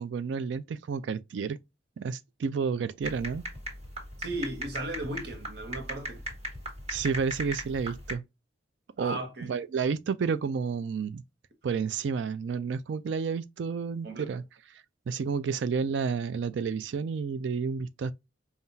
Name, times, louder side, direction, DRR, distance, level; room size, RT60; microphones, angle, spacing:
voice 1, 0.0-1.6 2.0-3.4 6.9-8.2 9.0-9.2 9.5-11.2 11.6-14.4 15.1-18.1, right 5 dB, 80° right, 0.4 m, -30 dB
sound 1, 3.0-8.1, equal, 35° right, 1.7 m, -38 dB
voice 2, 4.2-6.3 9.0-9.5 14.0-14.4, right 1 dB, 60° right, 1.0 m, -36 dB
5.5 x 2.4 x 2.6 m
head